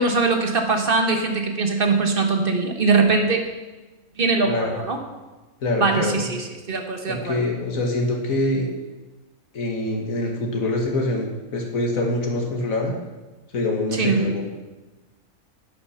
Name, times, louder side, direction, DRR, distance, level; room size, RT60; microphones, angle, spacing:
voice 1, 0.0-3.5 4.2-5.0 5.8-7.3 13.9-14.2, right 3 dB, 40° right, 4 dB, 1.5 m, -21 dB
voice 2, 5.6-6.3 7.1-8.7 9.5-12.9 13.5-14.4, left 2 dB, 80° left, 0 dB, 2.0 m, -25 dB
11.5 x 8.6 x 5.8 m, 1.2 s
omnidirectional pair, 1.4 m